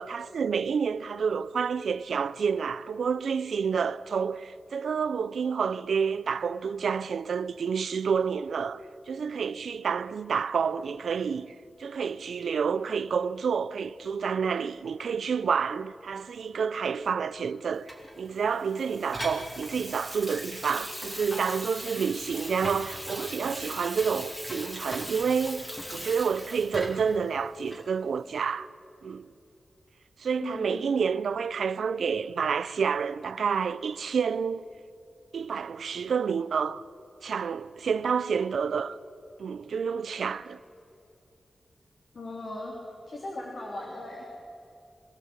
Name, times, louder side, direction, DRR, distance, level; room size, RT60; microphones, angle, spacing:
voice 1, 0.0-17.9 18.2-25.6 25.9-28.7 29.0-29.3 30.2-34.6 35.3-36.8 37.2-39.0 39.4-40.6, right 6 dB, 90° right, 0.6 m, -29 dB
Water tap faucet / Sink (filling or washing), 17.9-27.2 27.7-27.8, equal, 15° left, 2.8 m, -39 dB
voice 2, 30.4-31.1 42.1-42.7 43.1-44.2, left 2 dB, 45° left, 3.1 m, -38 dB
23.5 x 16.0 x 8.2 m
wide cardioid pair, 180°, 0 cm